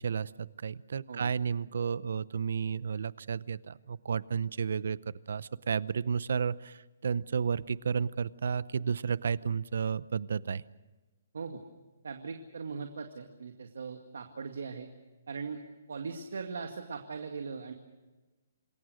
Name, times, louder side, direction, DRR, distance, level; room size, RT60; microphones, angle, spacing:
voice 1, 0.0-5.0 5.3-10.6, right 6 dB, 65° right, 19 dB, 0.7 m, -32 dB
voice 2, 12.0-14.9 15.3-15.6 15.9-17.7, right 5 dB, 85° right, 5 dB, 2.1 m, -39 dB
27.5 x 21.0 x 6.4 m, 1.2 s
hypercardioid pair, 175°, 0 cm